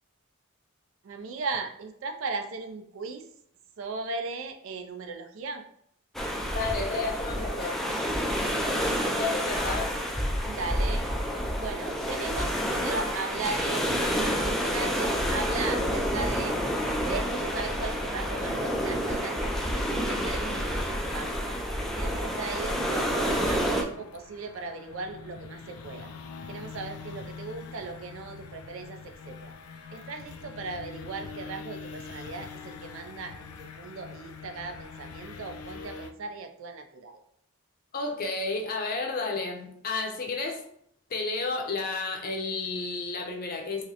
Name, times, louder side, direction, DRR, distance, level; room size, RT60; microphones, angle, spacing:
voice 1, 1.0-3.2 3.8-5.6 10.4-11.0 11.6-16.6 17.0-21.6 22.0-26.1 26.5-29.5 29.9-37.2, right 4 dB, 65° right, 5 dB, 0.4 m, -37 dB
sound 1, 6.1-23.8, equal, ahead, 0.3 m, -29 dB
voice 2, 6.5-7.8 9.2-9.9 37.9-40.6 41.1-43.8, left 3 dB, 45° left, 2 dB, 0.6 m, -31 dB
sound 2, 21.7-36.1, left 5 dB, 85° left, 0.4 m, -44 dB
4.7 x 2.1 x 2.8 m, 0.68 s
head